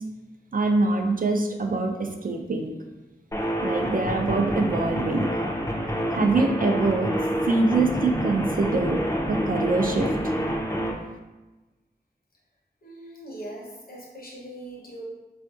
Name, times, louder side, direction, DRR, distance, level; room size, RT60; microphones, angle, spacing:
voice 1, 0.5-2.7 3.6-5.3 6.1-7.1 7.5-9.0 9.3-10.3, right 3 dB, 55° right, 3 dB, 0.4 m, -24 dB
sound 1, 3.3-10.9, equal, 20° left, 0.5 m, -27 dB
voice 2, 12.8-15.0, right 1 dB, 55° left, -3 dB, 0.9 m, -40 dB
4.3 x 2.5 x 2.4 m, 1.1 s
wide cardioid pair, 50°, 18 cm